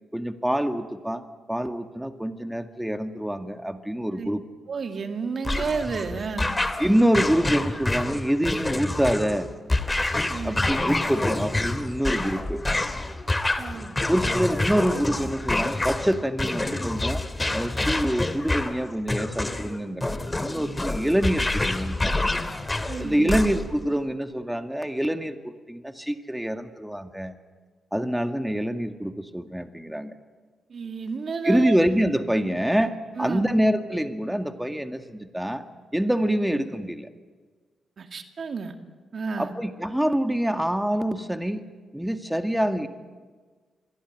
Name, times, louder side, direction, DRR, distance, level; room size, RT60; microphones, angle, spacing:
voice 1, 0.1-4.4 6.8-9.5 10.4-12.6 14.1-17.2 17.5-22.3 23.0-27.4 27.9-30.1 31.4-35.6 35.9-37.1 39.4-41.6 41.9-42.9, equal, 5° right, 7 dB, 2.0 m, -26 dB
voice 2, 4.7-6.5 10.3-10.7 13.6-14.0 22.9-23.4 30.7-31.8 33.2-33.5 38.0-38.7 39.1-39.5, right 5 dB, 55° right, 6 dB, 2.3 m, -31 dB
sound 1, 5.4-23.8, left 2 dB, 25° left, 2.5 m, -27 dB
26.0 x 23.0 x 9.3 m, 1.4 s
hypercardioid pair, 40°, 0 cm